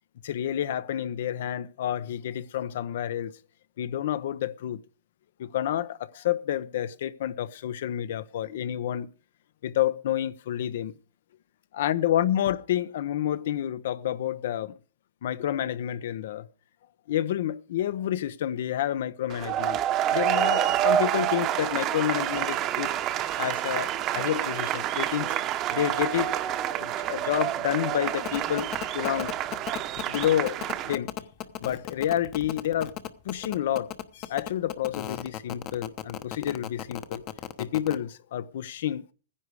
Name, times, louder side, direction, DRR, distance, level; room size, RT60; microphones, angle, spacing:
voice 1, 0.2-3.3 3.8-4.8 5.4-9.1 9.6-10.9 11.8-14.7 15.2-16.5 17.1-19.8 20.1-22.9 23.4-25.3 25.7-26.4 26.8-29.3 30.1-31.1 31.6-32.9 33.2-37.2 37.6-39.0, left 11 dB, 70° left, 0.8 m, -29 dB
sound 1, 19.3-30.9, right 11 dB, 30° right, 0.9 m, -28 dB
sound 2, 28.2-37.9, left 12 dB, 35° left, 1.0 m, -35 dB
15.0 x 10.0 x 4.9 m
supercardioid pair, 145°, 0 cm